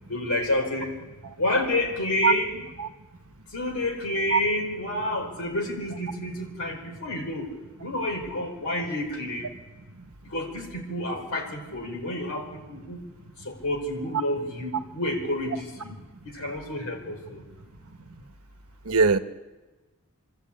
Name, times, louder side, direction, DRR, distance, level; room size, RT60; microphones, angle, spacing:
voice 1, 0.1-0.9 1.4-2.6 3.5-7.5 7.8-9.5 10.2-13.0 13.4-15.9 16.2-17.4, left 1 dB, 80° left, 2 dB, 5.0 m, -29 dB
voice 2, 18.9-19.2, right 5 dB, 85° right, 9 dB, 1.1 m, -21 dB
26.5 x 13.0 x 8.6 m, 1.2 s
head